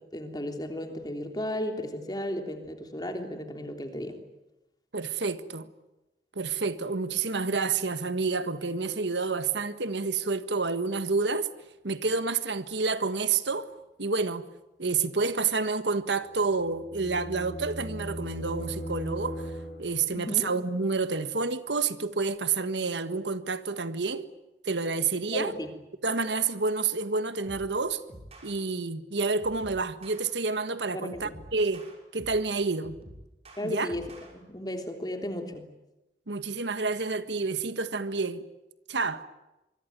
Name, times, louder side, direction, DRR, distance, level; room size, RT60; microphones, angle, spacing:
voice 1, 0.1-4.2 20.1-20.5 25.3-25.7 30.9-31.3 33.6-34.1 34.3-35.6, left 1 dB, 20° left, 3.4 m, -34 dB
voice 2, 4.9-5.7 6.3-11.5 11.8-13.7 14.0-14.4 14.8-19.4 19.8-24.2 24.6-25.5 26.0-28.0 28.4-31.9 32.1-33.0 33.6-33.9 36.3-38.4 38.9-39.2, right 4 dB, 85° right, 1.6 m, -29 dB
sound 1, 16.3-20.2, right 1 dB, 65° left, 6.2 m, -38 dB
sound 2, 27.5-27.8 28.1-28.5 29.4-30.2 31.1-32.5 32.8-34.3, right 1 dB, 35° right, 6.0 m, -48 dB
25.5 x 24.0 x 9.4 m
head